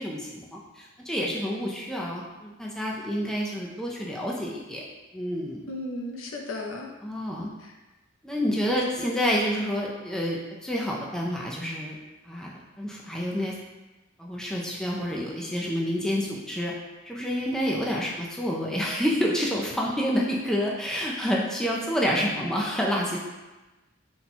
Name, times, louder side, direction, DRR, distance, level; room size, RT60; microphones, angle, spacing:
voice 1, 0.0-4.8 5.1-5.7 7.0-7.5 8.2-12.0 12.3-13.6 14.2-16.7 17.0-23.2, equal, 5° left, -3 dB, 0.4 m, -28 dB
voice 2, 5.7-6.9 7.6-7.7, left 2 dB, 70° left, 0 dB, 0.6 m, -35 dB
4.2 x 2.2 x 4.1 m, 1.1 s
head